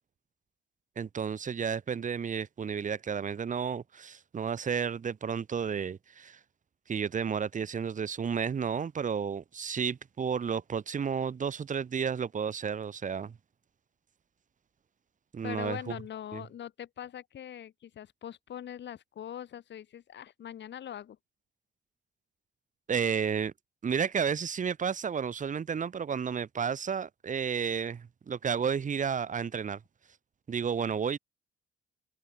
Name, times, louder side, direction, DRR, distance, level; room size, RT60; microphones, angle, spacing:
voice 1, 0.9-6.4 6.9-13.3 15.3-15.9 16.3-16.4 22.9-23.5 23.8-29.8 30.5-31.2, right 6 dB, 40° right, 1.6 m, -32 dB
voice 2, 15.4-21.2, left 10 dB, 65° left, 2.9 m, -42 dB
cardioid pair, 90°, 20 cm